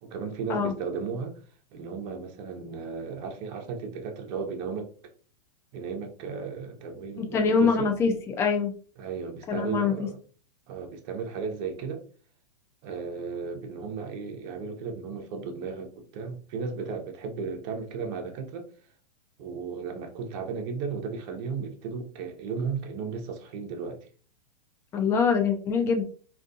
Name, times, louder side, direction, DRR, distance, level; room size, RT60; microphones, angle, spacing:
voice 1, 0.0-1.3 1.7-4.9 5.7-7.9 9.0-10.2 10.7-12.0 12.8-18.7 19.4-24.0, right 5 dB, 45° right, 0.7 m, -35 dB
voice 2, 7.2-8.7 9.5-10.1 24.9-26.0, left 5 dB, 15° left, 0.3 m, -24 dB
2.3 x 2.3 x 2.5 m
hypercardioid pair, 120°, 21 cm